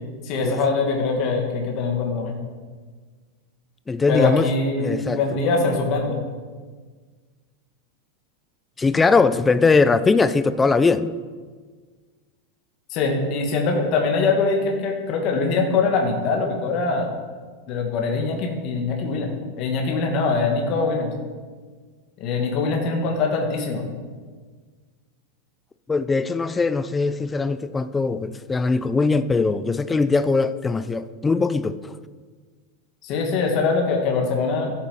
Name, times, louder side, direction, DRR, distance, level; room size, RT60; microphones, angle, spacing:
voice 1, 0.2-2.3 4.1-6.2 12.9-17.1 17.7-21.1 22.2-23.9 33.0-34.7, left 4 dB, 35° left, 1.9 m, -23 dB
voice 2, 3.9-4.5 4.8-5.4 8.8-11.1 25.9-31.9, left 4 dB, 10° left, 0.4 m, -21 dB
13.0 x 8.4 x 5.6 m
supercardioid pair, 170°, 0 cm